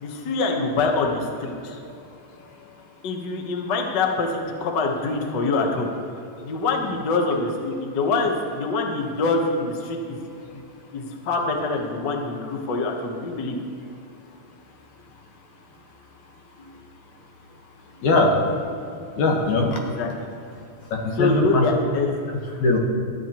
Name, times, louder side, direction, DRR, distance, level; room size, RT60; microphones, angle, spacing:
voice 1, 0.0-1.8 3.0-5.9 6.4-10.2 10.5-10.6 10.9-13.6 20.0-20.1 21.2-22.2, left 3 dB, 50° left, 2 dB, 1.4 m, -25 dB
voice 2, 19.2-19.8 20.9-21.7 22.6-22.8, left 2 dB, 80° left, 1 dB, 2.8 m, -20 dB
18.0 x 13.0 x 3.0 m, 2.7 s
omnidirectional pair, 3.3 m